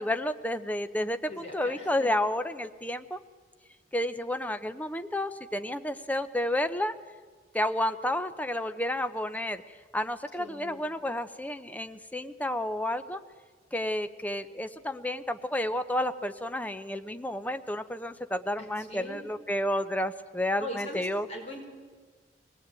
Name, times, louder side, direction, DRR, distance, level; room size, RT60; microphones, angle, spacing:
voice 1, 0.0-3.2 3.9-6.9 7.5-9.6 9.9-13.2 13.7-21.3, left 1 dB, 10° left, 10 dB, 0.8 m, -31 dB
voice 2, 1.3-2.1 10.4-10.8 18.6-19.2 20.6-21.6, left 1 dB, 40° left, 2 dB, 4.2 m, -41 dB
23.0 x 18.5 x 9.0 m, 1.5 s
head